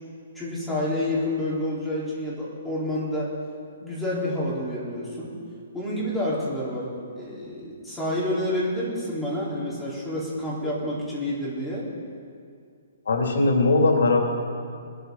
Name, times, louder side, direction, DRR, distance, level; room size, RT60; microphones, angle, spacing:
voice 1, 0.3-3.3 3.8-5.3 5.7-6.9 7.2-11.8, left 1 dB, ahead, -9 dB, 4.4 m, -28 dB
voice 2, 13.1-14.3, left 3 dB, 80° left, 1 dB, 2.9 m, -20 dB
21.5 x 13.5 x 4.1 m, 2.3 s
hypercardioid pair, 160°, 0 cm